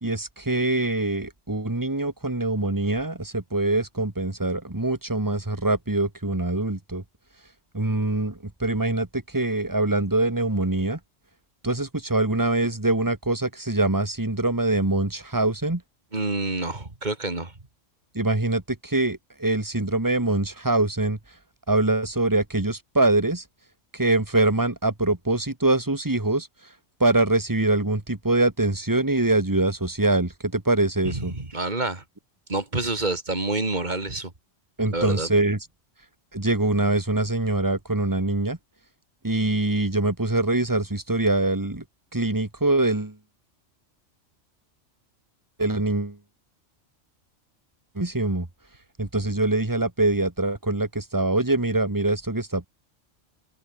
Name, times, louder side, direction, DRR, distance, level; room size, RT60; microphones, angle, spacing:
voice 1, 0.0-7.0 7.7-11.0 11.6-15.8 18.2-21.2 21.7-23.4 23.9-26.5 27.0-31.3 34.8-35.6 36.3-38.6 39.2-41.8 42.1-43.1 45.6-46.2 48.0-48.5 49.0-52.7, right 2 dB, 15° right, 2.0 m, -24 dB
voice 2, 16.1-17.5 31.0-32.0 32.5-34.3 34.9-35.3, right 2 dB, 35° right, 3.0 m, -28 dB
omnidirectional pair, 1.2 m